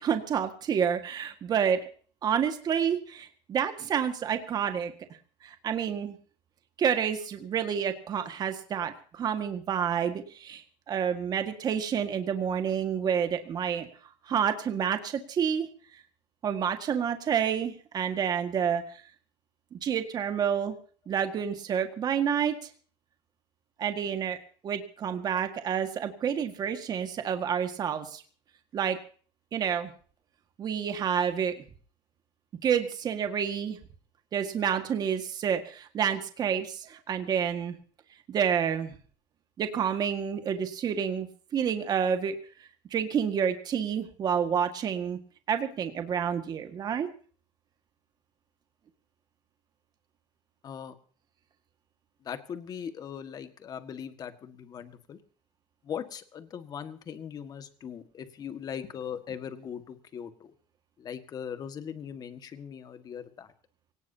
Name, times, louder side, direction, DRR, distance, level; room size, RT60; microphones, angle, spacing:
voice 1, 0.0-1.8 2.2-4.9 5.4-6.2 6.8-13.9 14.3-15.7 15.9-16.0 16.4-19.0 19.7-20.8 21.1-22.7 23.8-24.4 24.6-28.2 28.7-29.0 29.5-29.9 30.6-31.6 32.6-33.8 34.3-37.8 38.3-39.0 39.6-42.4 42.9-45.2 45.5-47.1, right 8 dB, 35° right, 7 dB, 1.8 m, -29 dB
voice 2, 50.6-50.9 52.2-55.2 55.8-60.5 61.0-63.5, left 8 dB, 30° left, 9 dB, 1.8 m, -40 dB
24.0 x 18.5 x 2.9 m, 0.43 s
cardioid pair, 160°, 12 cm